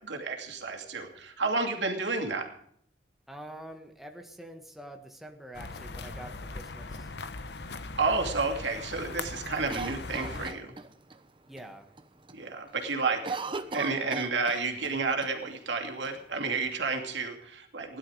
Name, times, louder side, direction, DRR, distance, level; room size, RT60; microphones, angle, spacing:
voice 1, 0.0-2.5 8.0-10.7 12.3-13.4 13.7-18.0, right 4 dB, 85° right, 3 dB, 2.6 m, -31 dB
voice 2, 3.3-7.1 11.5-11.9, right 1 dB, ahead, 3 dB, 1.5 m, -46 dB
sound 1, 5.5-10.5, left 3 dB, 70° left, 1.0 m, -39 dB
Cough, 9.7-11.2 11.6-11.7 12.0-12.4 12.7-14.9 15.2-15.3 16.0-16.8, right 4 dB, 30° right, 0.9 m, -38 dB
17.5 x 11.5 x 4.9 m, 0.67 s
head